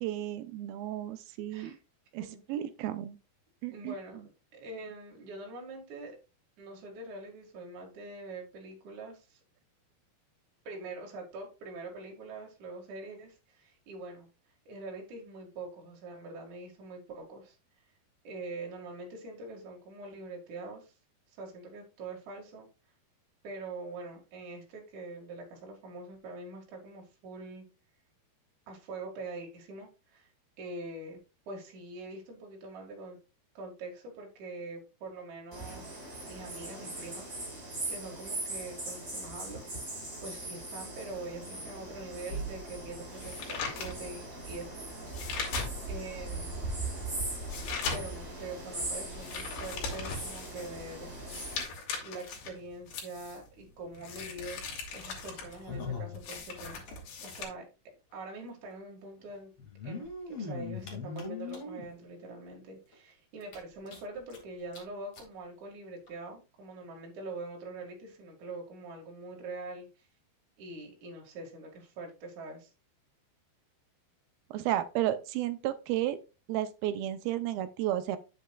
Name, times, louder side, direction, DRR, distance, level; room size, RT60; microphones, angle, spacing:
voice 1, 0.0-1.8 2.1-3.2 3.6-4.0 74.5-76.2 76.5-78.2, right 13 dB, 80° right, 2.3 m, -33 dB
voice 2, 3.7-4.2 4.5-6.2 6.6-9.4 10.6-14.3 14.7-17.6 18.2-20.9 21.3-22.7 23.4-27.6 28.7-30.3 30.6-31.2 31.5-33.2 33.5-36.0 36.3-37.4 37.9-39.6 40.2-44.7 45.9-46.7 47.9-51.1 52.0-54.6 54.9-57.6 58.1-59.5 59.8-70.1 70.6-72.7, right 2 dB, 55° right, 3.0 m, -44 dB
sound 1, 35.5-51.6, right 2 dB, 20° right, 4.9 m, -40 dB
sound 2, 42.3-46.1 46.6-57.4, left 4 dB, 75° left, 3.8 m, -39 dB
sound 3, 55.5-56.9 57.2-57.3 57.5-57.6 58.6-58.7 59.6-61.9 62.5-62.6 62.9-63.0 63.4-64.4 64.7-64.8 65.1-65.3 66.1-66.2, left 4 dB, 40° left, 2.6 m, -40 dB
9.8 x 7.6 x 2.3 m
omnidirectional pair, 4.6 m